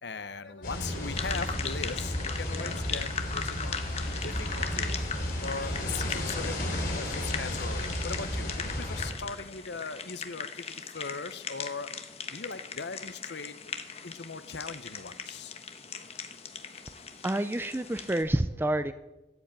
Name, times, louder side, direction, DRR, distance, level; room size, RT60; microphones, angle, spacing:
voice 1, 0.0-11.9 12.3-13.7 14.0-15.5 16.6-16.7, left 4 dB, 70° left, 13 dB, 0.9 m, -40 dB
sound 1, 0.6-9.1, left 1 dB, 50° left, 3.9 m, -33 dB
sound 2, 1.2-18.2, left 6 dB, 35° left, 1.1 m, -39 dB
voice 2, 16.9-18.9, right 1 dB, 10° right, 11 dB, 0.4 m, -29 dB
14.0 x 8.3 x 8.8 m, 1.1 s
head